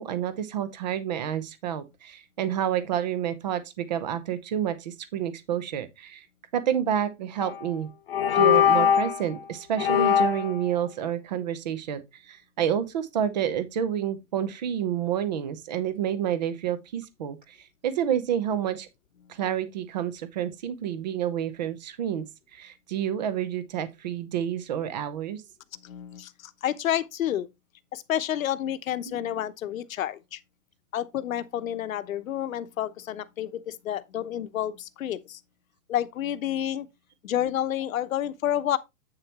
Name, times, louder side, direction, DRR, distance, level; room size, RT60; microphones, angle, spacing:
voice 1, 0.0-6.3 6.5-7.9 8.3-17.6 17.8-18.9 19.3-22.2 22.5-25.4 29.1-29.2, right 9 dB, 30° right, 0.8 m, -29 dB
sound 1, 7.4-7.7 8.1-9.2 9.8-10.6, left 9 dB, 40° left, 0.7 m, -21 dB
voice 2, 25.7-27.5 27.9-30.4 30.9-35.4 35.9-36.9 37.2-38.8, left 11 dB, 65° left, 1.0 m, -29 dB
8.5 x 6.7 x 2.9 m
hypercardioid pair, 175°, 44 cm